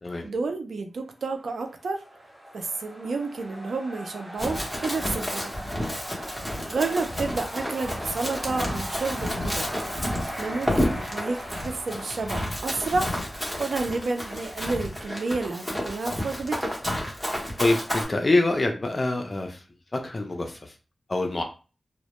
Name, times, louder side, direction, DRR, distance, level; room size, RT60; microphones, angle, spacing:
voice 1, 0.2-2.0 2.5-5.5 6.7-9.7 10.4-13.1 13.6-16.7, right 3 dB, 85° right, 5 dB, 0.4 m, -30 dB
sound 1, 1.5-15.3, equal, 30° right, 1.0 m, -40 dB
Run, 4.4-18.0, left 1 dB, ahead, 0.8 m, -31 dB
voice 2, 17.6-19.6 19.9-20.7 21.1-21.4, left 2 dB, 40° left, 4 dB, 0.4 m, -25 dB
2.1 x 2.0 x 2.9 m, 0.34 s
wide cardioid pair, 85°, 0 cm